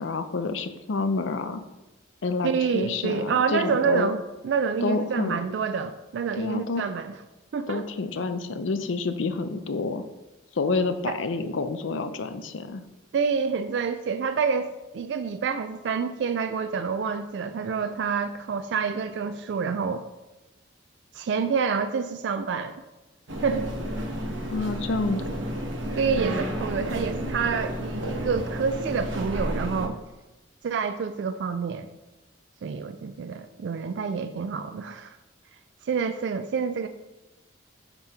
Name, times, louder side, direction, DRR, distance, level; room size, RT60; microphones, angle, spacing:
voice 1, 0.0-1.6 2.2-4.1 4.8-5.4 6.3-6.8 7.7-10.0 10.6-12.8 24.5-25.4, left 3 dB, 80° left, 9 dB, 0.5 m, -28 dB
voice 2, 2.4-7.2 7.5-7.9 11.1-11.2 13.1-20.0 21.1-22.8 23.4-23.7 26.0-30.0 30.6-31.9 32.6-35.2 35.8-36.9, right 5 dB, 65° right, 9 dB, 0.3 m, -28 dB
sound 1, 23.3-29.9, equal, 80° right, 1.1 m, -31 dB
7.3 x 3.0 x 5.5 m, 1.0 s
head